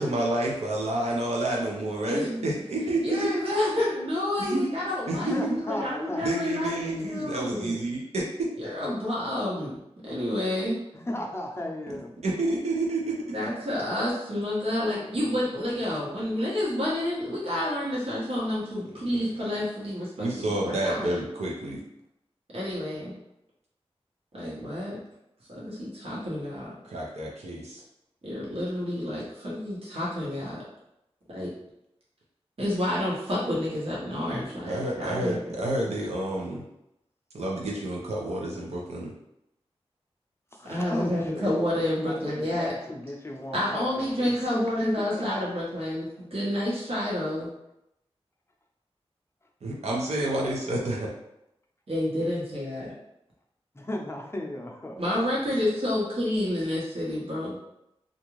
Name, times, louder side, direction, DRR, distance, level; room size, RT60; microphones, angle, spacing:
voice 1, 0.0-3.3 4.4-4.6 5.1-5.6 6.2-8.5 12.2-13.2 19.1-19.2 20.2-21.8 26.9-27.8 34.6-36.6 37.3-39.1 49.6-51.1, right 1 dB, 85° right, -2 dB, 0.7 m, -29 dB
voice 2, 2.1-2.4 3.0-7.7 8.6-9.8 10.0-10.8 13.3-21.1 22.5-23.1 24.3-25.0 25.5-26.7 28.2-30.6 31.3-31.5 32.6-35.4 40.7-42.7 43.5-47.5 51.9-52.9 55.0-57.5, left 1 dB, 60° right, -7 dB, 1.1 m, -29 dB
voice 3, 5.2-6.2 10.9-12.1 14.9-15.8 40.6-41.5 42.0-45.5 49.8-50.0 53.7-55.6, left 1 dB, 25° left, 0 dB, 0.5 m, -36 dB
2.5 x 2.4 x 3.0 m, 0.83 s
wide cardioid pair, 55°, 11 cm